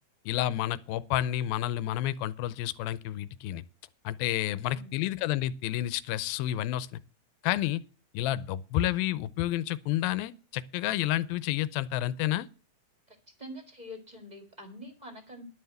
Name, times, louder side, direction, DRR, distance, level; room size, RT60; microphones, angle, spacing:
voice 1, 0.3-3.6 4.0-7.0 7.4-7.8 8.1-12.5, left 13 dB, 85° left, 2.4 m, -30 dB
voice 2, 4.4-5.1 13.1-15.5, left 1 dB, 20° right, 1.3 m, -46 dB
11.5 x 5.7 x 7.8 m
omnidirectional pair, 4.2 m